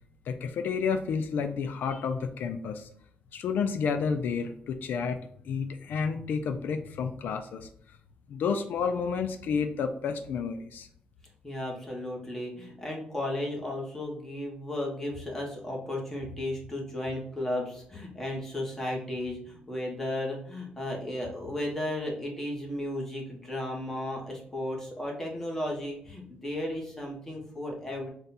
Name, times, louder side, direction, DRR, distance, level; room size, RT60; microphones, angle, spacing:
voice 1, 0.3-2.9 3.3-7.7 8.3-10.9, left 6 dB, 75° left, 7 dB, 0.3 m, -30 dB
voice 2, 11.4-28.1, left 1 dB, 10° left, -1 dB, 1.0 m, -34 dB
3.8 x 2.3 x 4.0 m, 0.64 s
wide cardioid pair, 150°, 3 cm